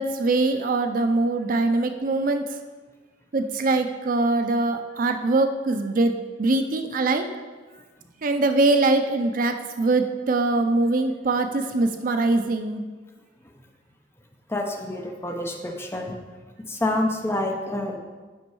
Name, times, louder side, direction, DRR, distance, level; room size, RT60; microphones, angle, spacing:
voice 1, 0.0-2.6 3.3-6.1 6.4-7.3 8.2-12.8, right 2 dB, 50° right, 7 dB, 0.5 m, -22 dB
voice 2, 14.5-16.2 16.7-18.0, left 1 dB, 15° left, 2 dB, 0.8 m, -27 dB
8.2 x 5.2 x 4.7 m, 1.4 s
head